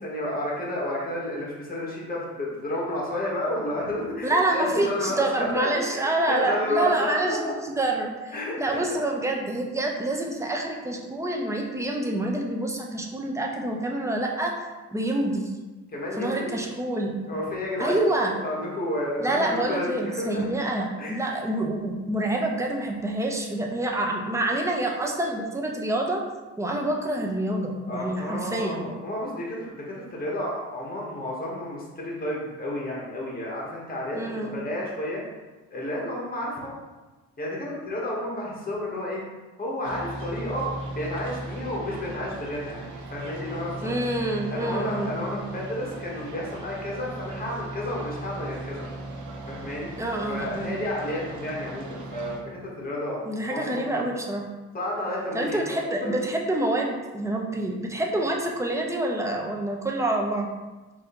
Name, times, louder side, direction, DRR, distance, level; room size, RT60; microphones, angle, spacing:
voice 1, 0.0-7.5 8.3-9.0 15.9-16.6 17.3-20.4 21.0-21.2 27.9-35.2 35.7-36.7 37.4-39.2 39.6-43.9 44.5-48.9 49.5-49.9 50.3-53.2 53.5-54.1 54.7-56.1, left 1 dB, 30° left, -4 dB, 1.5 m, -31 dB
voice 2, 4.2-14.5 14.9-15.5 16.2-17.1 17.8-18.3 19.2-26.2 26.6-28.9 34.1-34.6 43.8-45.4 50.0-50.8 53.2-54.4 55.3-60.5, right 1 dB, 10° right, 0 dB, 0.7 m, -27 dB
sound 1, 39.8-52.4, right 2 dB, 75° right, 0.8 m, -38 dB
4.0 x 2.8 x 3.9 m, 1.2 s
cardioid pair, 90°, 30 cm